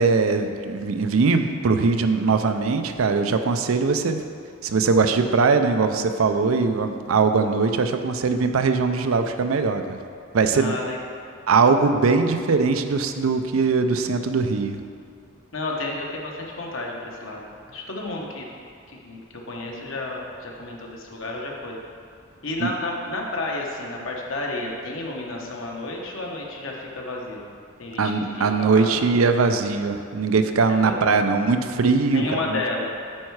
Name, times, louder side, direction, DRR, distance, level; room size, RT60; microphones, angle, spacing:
voice 1, 0.0-4.2 4.6-10.0 10.3-10.7 11.5-14.8 22.6-22.7 28.0-32.6, right 4 dB, 90° right, 7 dB, 0.5 m, -21 dB
voice 2, 10.5-11.0 15.5-18.5 18.9-19.2 19.5-21.8 22.4-27.5 27.8-28.9 30.7-31.2 32.1-33.0, left 2 dB, 70° left, -1 dB, 1.1 m, -31 dB
8.8 x 4.7 x 4.7 m, 2.4 s
head